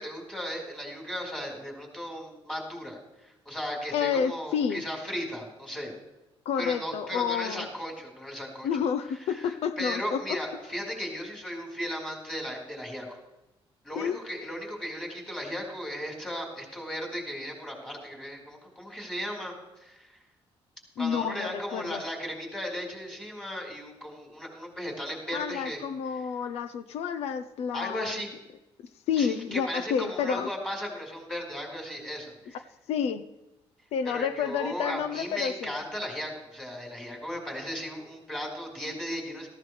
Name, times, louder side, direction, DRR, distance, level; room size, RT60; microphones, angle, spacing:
voice 1, 0.0-5.9 6.6-8.7 9.3-13.2 13.8-20.2 21.0-25.8 27.7-28.3 29.2-32.6 34.0-39.5, equal, 5° left, 0 dB, 4.7 m, -36 dB
voice 2, 3.9-4.8 6.4-7.7 8.6-10.4 14.0-14.2 21.0-22.0 25.3-28.2 29.1-30.5 32.9-33.3 33.9-35.8, left 7 dB, 80° left, 10 dB, 0.7 m, -29 dB
18.5 x 15.5 x 3.3 m, 0.98 s
cardioid pair, 130°, 10 cm